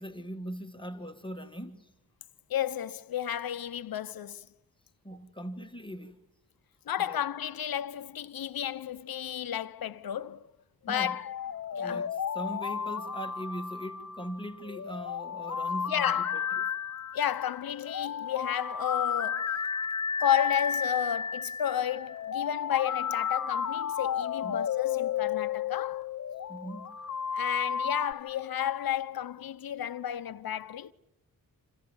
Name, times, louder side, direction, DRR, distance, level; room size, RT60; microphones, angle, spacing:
voice 1, 0.0-1.9 5.0-6.2 7.0-7.2 10.9-11.2 11.7-16.7 24.4-24.6 26.5-27.0, equal, 15° left, 1.8 m, -40 dB
voice 2, 2.5-4.5 6.9-10.5 10.8-11.3 11.8-12.1 15.9-16.5 17.1-19.6 20.2-26.1 27.3-30.9, left 10 dB, 80° left, 1.0 m, -32 dB
sound 1, 11.0-28.1, left 7 dB, 50° left, 1.1 m, -33 dB
28.0 x 27.5 x 7.2 m
wide cardioid pair, 135°, 35 cm